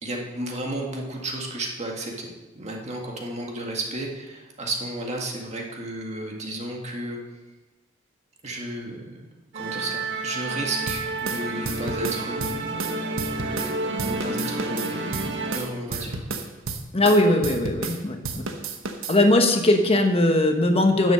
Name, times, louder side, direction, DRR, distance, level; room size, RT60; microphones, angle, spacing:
voice 1, 0.0-2.3 2.6-7.2 8.4-12.7 14.0-15.2 15.5-16.2, right 1 dB, 35° right, 0 dB, 1.9 m, -33 dB
Musical instrument, 9.5-15.6, right 2 dB, 65° right, 1.6 m, -30 dB
sound 1, 10.9-13.7 14.0-18.0 18.2-19.2, right 4 dB, 90° right, 1.1 m, -32 dB
voice 2, 16.9-18.2 19.1-21.1, left 1 dB, 30° left, 5 dB, 1.2 m, -19 dB
10.5 x 7.6 x 6.4 m, 1.1 s
head